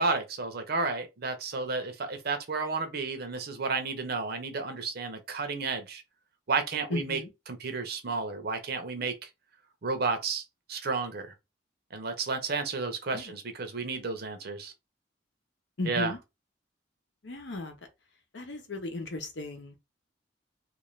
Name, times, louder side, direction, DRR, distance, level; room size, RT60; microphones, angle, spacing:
voice 1, 0.0-6.0 6.5-7.2 7.5-9.3 9.8-10.4 10.7-11.3 11.9-14.7 15.8-16.1, right 4 dB, 55° right, 0.7 m, -32 dB
voice 2, 6.9-7.3 13.1-13.3 15.8-16.2 17.2-17.8 18.3-19.7, left 2 dB, 70° left, 0.8 m, -35 dB
2.5 x 2.4 x 3.1 m
head